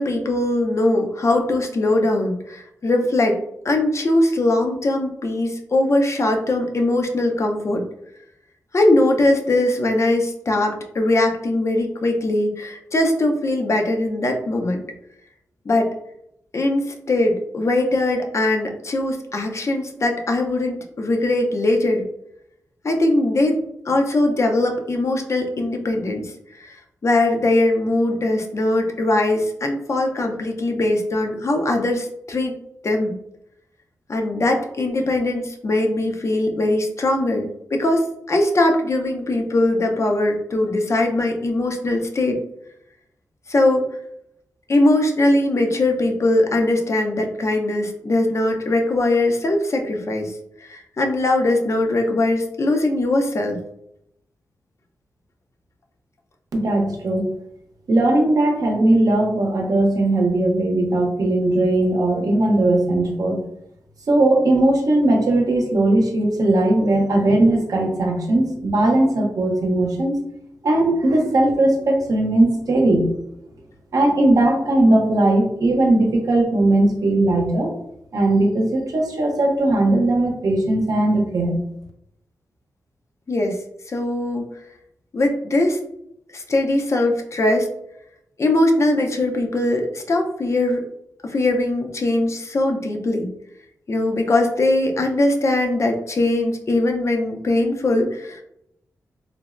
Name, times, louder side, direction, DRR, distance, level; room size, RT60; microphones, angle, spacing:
voice 1, 0.0-7.8 8.7-14.8 15.7-15.9 16.5-22.0 22.8-23.6 23.9-26.3 26.6-26.8 27.0-32.5 32.8-33.1 34.1-42.4 43.5-43.9 44.7-50.4 50.6-53.6 83.3-83.6 83.9-84.4 85.1-85.8 86.3-87.7 88.4-90.8 91.2-93.3 93.9-98.4, left 2 dB, 45° left, 3 dB, 0.5 m, -21 dB
voice 2, 56.5-57.3 57.9-63.4 64.1-70.2 70.6-73.1 73.9-77.7 78.1-81.5, right 2 dB, 65° right, 1 dB, 0.7 m, -18 dB
3.2 x 2.0 x 2.4 m, 0.78 s
cardioid pair, 60°, 7 cm